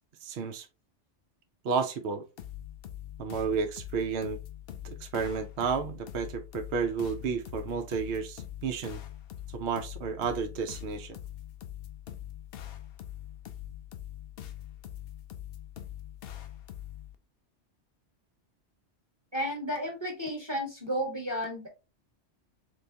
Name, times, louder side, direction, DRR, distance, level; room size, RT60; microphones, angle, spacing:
voice 1, 0.2-0.7 1.6-2.2 3.2-4.4 4.8-9.0 9.5-11.2, right 5 dB, 65° right, 0.8 m, -32 dB
sound 1, 2.4-17.2, left 12 dB, 60° left, 0.7 m, -43 dB
voice 2, 19.3-21.7, equal, 25° right, 1.2 m, -32 dB
3.7 x 3.3 x 2.7 m
omnidirectional pair, 1.2 m